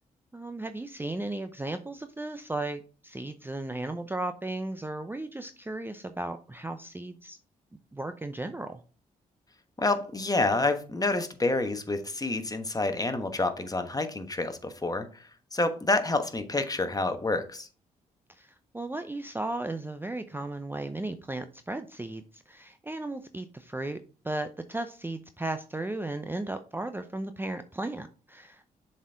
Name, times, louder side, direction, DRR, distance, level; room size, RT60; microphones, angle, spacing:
voice 1, 0.3-7.4 7.9-8.8 18.3-24.0 24.2-28.7, right 2 dB, 10° right, 9 dB, 0.6 m, -35 dB
voice 2, 9.8-15.1 15.5-17.7, left 2 dB, 20° left, 8 dB, 1.2 m, -28 dB
7.1 x 4.3 x 3.5 m, 0.38 s
hypercardioid pair, 45°, 17 cm